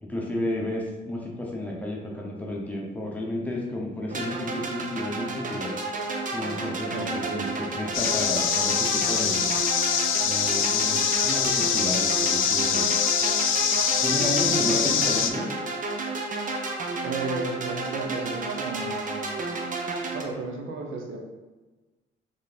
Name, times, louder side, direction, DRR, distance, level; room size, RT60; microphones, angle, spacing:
voice 1, 0.0-5.8 6.3-9.4 10.2-12.9 14.0-15.4, left 1 dB, 5° left, -3 dB, 1.0 m, -32 dB
sound 1, 4.1-20.2, right 3 dB, 40° right, 0.7 m, -31 dB
voice 2, 6.9-7.5 14.5-14.8 17.0-19.4 20.1-21.2, right 3 dB, 85° right, 1 dB, 0.8 m, -34 dB
sound 2, 7.9-15.3, left 8 dB, 85° left, 0.5 m, -24 dB
3.5 x 3.2 x 4.2 m, 1.2 s
cardioid pair, 90°, 20 cm